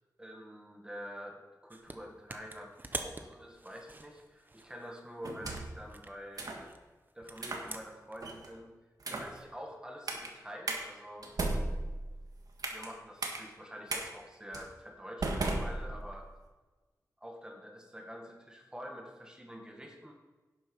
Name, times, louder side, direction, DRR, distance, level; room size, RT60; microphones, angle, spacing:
voice 1, 0.2-6.5 7.1-8.7 9.1-11.3 12.7-16.3 17.2-20.1, equal, 10° right, 2 dB, 1.7 m, -47 dB
sound 1, 1.7-2.0 2.3-5.1 5.5-8.2, right 2 dB, 30° right, 1.0 m, -45 dB
sound 2, 5.2-5.8 6.4-6.6 7.4-7.7 8.2-8.5 9.0-9.4 10.1-10.3 10.7-10.8 11.2-12.9 13.2-13.4 13.9-14.0 14.5-14.7 15.2-16.3, right 2 dB, 70° right, 1.8 m, -35 dB
11.5 x 7.7 x 5.5 m, 1.2 s
wide cardioid pair, 115°, 7 cm